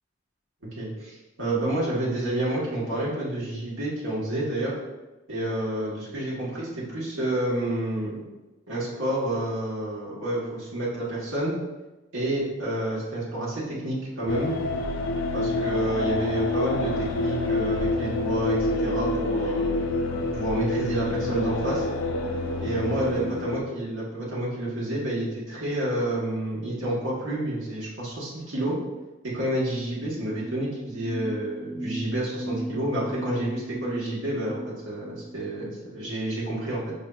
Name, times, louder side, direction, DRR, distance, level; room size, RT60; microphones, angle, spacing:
voice 1, 0.8-4.7 5.3-8.1 8.7-11.5 12.1-14.5 15.3-19.7 20.1-21.8 22.6-28.8 29.2-36.9, right 1 dB, 85° right, -6 dB, 1.2 m, -29 dB
sound 1, 14.3-23.6, left 2 dB, 70° left, 0.4 m, -27 dB
sound 2, 29.6-35.4, right 1 dB, 20° right, 0.4 m, -37 dB
5.2 x 3.2 x 2.3 m, 1.1 s
head